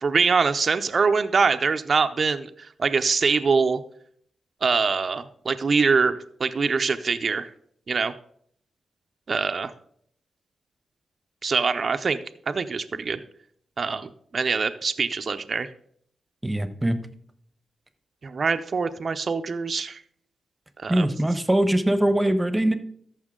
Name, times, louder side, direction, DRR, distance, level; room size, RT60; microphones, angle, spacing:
voice 1, 0.0-3.8 4.6-7.5 7.9-8.1 9.3-9.7 11.4-12.2 12.5-13.2 13.8-15.7 18.2-20.0 20.8-21.1, right 5 dB, 50° right, 8 dB, 0.6 m, -24 dB
voice 2, 16.4-17.0 20.9-22.7, right 1 dB, 15° right, 11 dB, 1.0 m, -22 dB
14.0 x 5.7 x 3.7 m, 0.64 s
cardioid pair, 65°, 0 cm